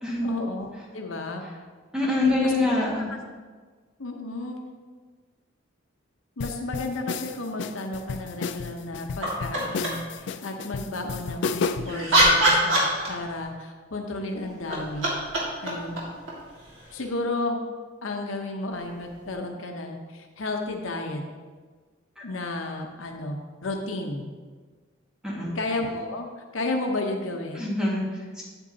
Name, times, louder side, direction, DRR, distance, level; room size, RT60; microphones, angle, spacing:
voice 1, 0.2-0.7 0.9-1.5 2.4-2.5 2.8-2.9 4.0-4.6 6.4-15.1 15.6-16.0 16.9-17.6 18.0-21.2 22.2-24.3 25.5-26.3 26.5-27.7, left 2 dB, 90° left, 3 dB, 0.9 m, -32 dB
voice 2, 1.9-3.1 22.2-22.3 25.2-25.5 27.5-28.4, left 2 dB, 5° right, -6 dB, 1.8 m, -25 dB
sound 1, 6.4-12.0, left 5 dB, 65° left, 0.3 m, -32 dB
sound 2, 9.2-10.1 11.6-13.5 14.5-17.1 19.2-19.3, right 1 dB, 80° right, 1.9 m, -24 dB
8.6 x 8.1 x 2.8 m, 1.5 s
head